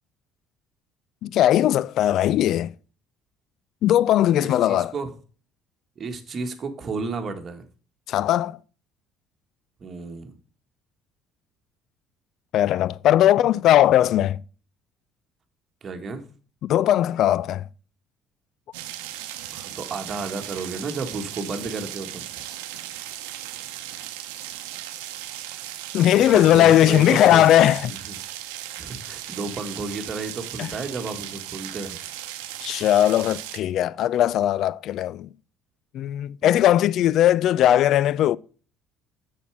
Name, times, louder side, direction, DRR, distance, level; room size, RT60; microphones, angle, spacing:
voice 1, 1.2-2.7 3.8-4.9 8.1-8.6 12.5-14.4 16.6-17.7 25.9-27.9 30.6-30.7 32.6-35.3 35.9-38.4, left 12 dB, 65° left, 0.3 m, -19 dB
voice 2, 4.4-5.1 6.0-7.6 9.8-10.3 15.8-16.2 19.5-22.2 26.3-27.5 27.9-28.2 28.8-32.0 36.4-36.7, right 3 dB, 40° right, 1.5 m, -32 dB
sound 1, 18.7-33.6, right 13 dB, 90° right, 0.8 m, -37 dB
6.9 x 6.0 x 4.7 m
supercardioid pair, 75°, 0 cm